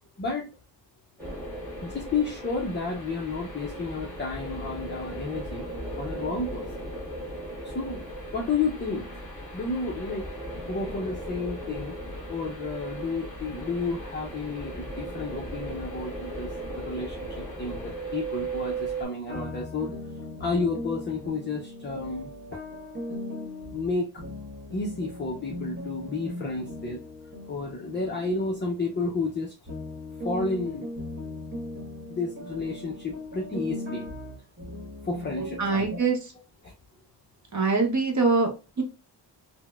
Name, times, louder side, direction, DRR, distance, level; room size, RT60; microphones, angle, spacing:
voice 1, 0.2-0.6 1.8-5.7 6.0-6.9 7.6-8.0 8.3-9.1 9.5-10.3 10.7-12.0 12.3-20.0 20.4-22.6 23.7-24.1 24.7-27.0 27.5-29.6 30.2-30.9 32.1-34.1 35.0-36.0 36.6-36.7, left 3 dB, 25° left, -1 dB, 0.5 m, -31 dB
sound 1, 1.2-19.0, right 2 dB, 5° left, 1.1 m, -37 dB
sound 2, 19.3-29.4 29.7-36.0, left 1 dB, 25° right, 1.2 m, -38 dB
voice 2, 35.6-36.3 37.5-38.8, right 4 dB, 40° right, 2 dB, 0.8 m, -24 dB
3.9 x 2.1 x 2.2 m, 0.30 s
wide cardioid pair, 170°, 44 cm